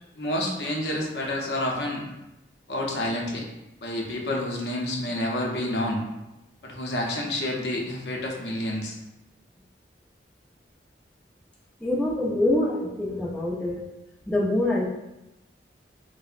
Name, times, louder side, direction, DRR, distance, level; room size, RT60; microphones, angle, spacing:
voice 1, 0.2-2.0 2.7-3.4 3.8-6.0 6.6-9.0, left 1 dB, 65° left, -1 dB, 0.6 m, -29 dB
voice 2, 11.8-13.8 14.3-14.9, left 1 dB, 10° left, -6 dB, 0.5 m, -25 dB
4.5 x 2.0 x 2.4 m, 0.95 s
head